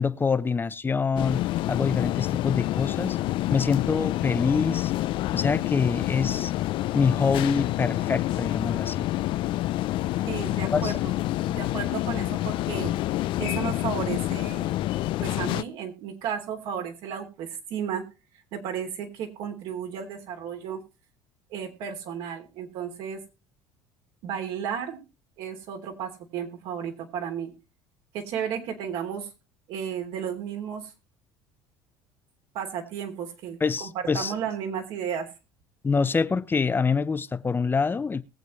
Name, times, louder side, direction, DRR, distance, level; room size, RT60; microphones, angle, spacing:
voice 1, 0.0-1.4 1.7-3.2 3.5-4.9 5.3-6.5 6.9-9.1 10.7-10.9 33.6-34.3 35.8-38.2, left 5 dB, 20° left, 0.9 m, -25 dB
sound 1, 1.2-15.6, left 15 dB, 60° left, 0.5 m, -28 dB
voice 2, 10.2-11.1 11.5-12.9 13.4-14.7 15.0-18.0 18.5-20.8 21.5-23.2 24.2-25.0 25.4-27.5 28.1-29.3 29.7-30.9 32.5-35.3, right 8 dB, 70° right, 3.2 m, -33 dB
21.0 x 7.9 x 3.2 m
supercardioid pair, 90°, 10 cm